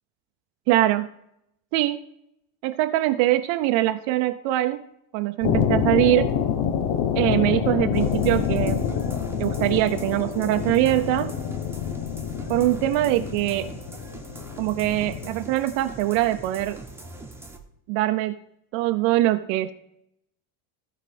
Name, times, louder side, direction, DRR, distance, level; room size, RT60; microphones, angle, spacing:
voice 1, 0.7-1.1 1.7-2.0 2.6-4.8 5.1-6.3 7.1-8.8 9.4-11.3 12.5-13.7 14.6-16.8 17.9-18.4 18.7-19.7, right 15 dB, 65° right, 8 dB, 0.8 m, -22 dB
sound 1, 5.4-15.3, left 8 dB, 60° left, 1.1 m, -27 dB
sound 2, 7.9-17.6, right 2 dB, 5° right, 1.4 m, -42 dB
13.5 x 4.9 x 5.1 m, 0.76 s
supercardioid pair, 100°, 49 cm